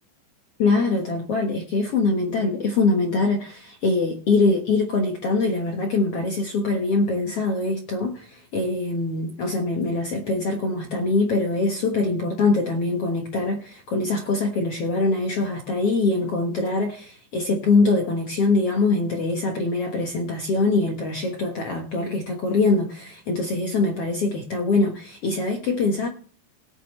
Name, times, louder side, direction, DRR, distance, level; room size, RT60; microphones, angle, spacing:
voice 1, 0.6-26.1, left 3 dB, 55° left, 1.8 m, -23 dB
19.0 x 8.4 x 3.2 m
omnidirectional pair, 4.2 m